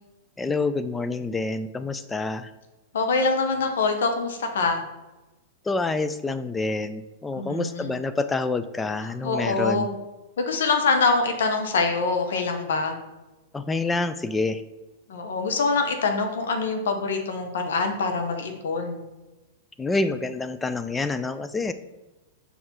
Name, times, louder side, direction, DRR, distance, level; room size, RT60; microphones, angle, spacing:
voice 1, 0.4-2.5 5.6-9.9 13.5-14.6 19.8-21.7, left 3 dB, 15° left, 11 dB, 0.3 m, -27 dB
voice 2, 2.9-4.8 7.3-7.9 9.2-9.9 10.4-13.0 15.1-19.0, left 4 dB, 75° left, 5 dB, 1.0 m, -24 dB
5.4 x 4.6 x 4.3 m, 1.1 s
hypercardioid pair, 110°, 0 cm